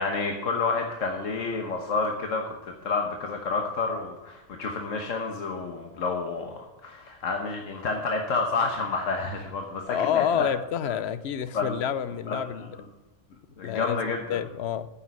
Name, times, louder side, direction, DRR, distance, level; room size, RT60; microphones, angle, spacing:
voice 1, 0.0-10.5 10.8-11.0 11.5-11.8 12.3-12.4 13.6-14.4, left 4 dB, 85° left, 3 dB, 1.5 m, -29 dB
voice 2, 9.9-12.6 13.6-14.0 14.3-14.9, left 8 dB, 60° left, 13 dB, 0.9 m, -28 dB
9.4 x 7.2 x 7.5 m, 1.1 s
omnidirectional pair, 1.3 m